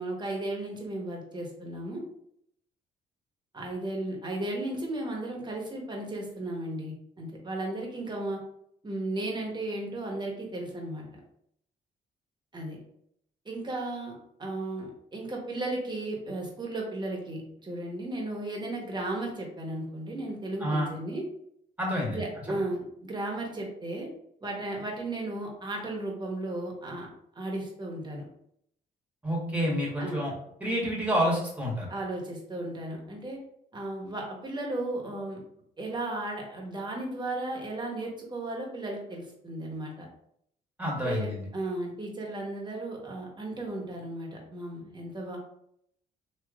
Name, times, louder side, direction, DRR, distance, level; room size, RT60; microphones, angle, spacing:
voice 1, 0.0-2.1 3.5-8.4 8.8-11.2 12.5-12.8 13.4-21.3 22.1-24.1 24.4-27.1 27.3-28.2 30.0-30.2 31.9-33.4 33.7-35.4 35.8-40.1 41.0-45.4, right 2 dB, 25° right, -1 dB, 1.1 m, -35 dB
voice 2, 20.6-20.9 21.8-22.2 29.2-30.3 30.6-31.9 40.8-41.4, equal, 10° right, -3 dB, 1.3 m, -28 dB
3.0 x 2.9 x 2.4 m, 0.72 s
supercardioid pair, 65°, 18 cm